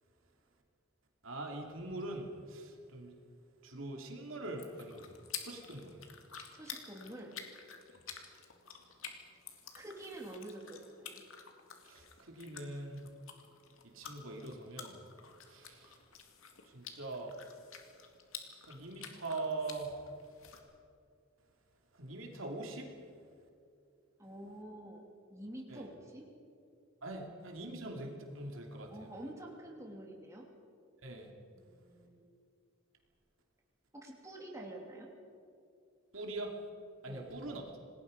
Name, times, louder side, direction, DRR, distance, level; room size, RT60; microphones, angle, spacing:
voice 1, 1.2-3.2 3.6-6.1 11.8-13.1 13.8-15.0 15.4-16.0 16.6-17.4 18.6-20.0 21.9-22.9 25.7-25.9 27.0-29.1 31.0-31.3 36.1-36.6 37.0-37.8, right 2 dB, 80° right, 2 dB, 2.9 m, -43 dB
sound 1, 4.4-20.6, left 7 dB, 85° left, 2.4 m, -50 dB
voice 2, 6.5-7.3 9.7-11.2 24.2-25.0 25.3-26.3 28.9-30.5 31.5-32.2 33.9-35.1 37.1-37.3, right 1 dB, 15° right, -1 dB, 2.8 m, -48 dB
27.0 x 19.5 x 5.3 m, 2.4 s
head